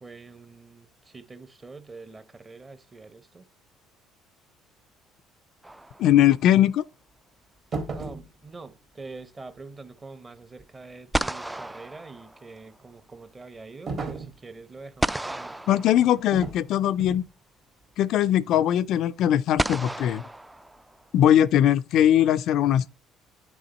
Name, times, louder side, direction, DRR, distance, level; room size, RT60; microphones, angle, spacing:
voice 1, 0.0-3.4 7.9-16.0, right 3 dB, 25° right, 0.9 m, -45 dB
sound 1, 5.6-6.5 10.6-10.7 11.1-12.8 15.0-16.6 17.9-18.0 19.6-21.2, right 1 dB, 10° right, 0.3 m, -32 dB
voice 2, 6.0-6.8 15.7-17.2 18.0-20.2 21.1-22.9, left 11 dB, 65° left, 0.4 m, -20 dB
sound 2, 7.7-8.3 13.9-14.4 16.3-16.6 17.0-17.3, right 3 dB, 45° right, 1.7 m, -33 dB
9.2 x 3.6 x 4.1 m
supercardioid pair, 85°, 0 cm